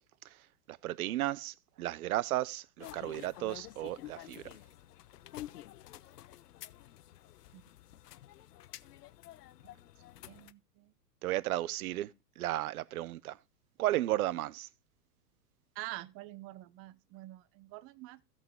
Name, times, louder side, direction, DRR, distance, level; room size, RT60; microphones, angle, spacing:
voice 1, 0.7-4.5 11.2-12.1 12.4-13.4 13.8-14.7, right 15 dB, 60° right, 0.8 m, -34 dB
sound 1, 2.8-10.5, left 14 dB, 70° left, 0.7 m, -50 dB
voice 2, 10.2-10.9 15.7-18.2, right 17 dB, 30° right, 0.6 m, -46 dB
16.5 x 5.8 x 3.7 m
hypercardioid pair, 105°, 49 cm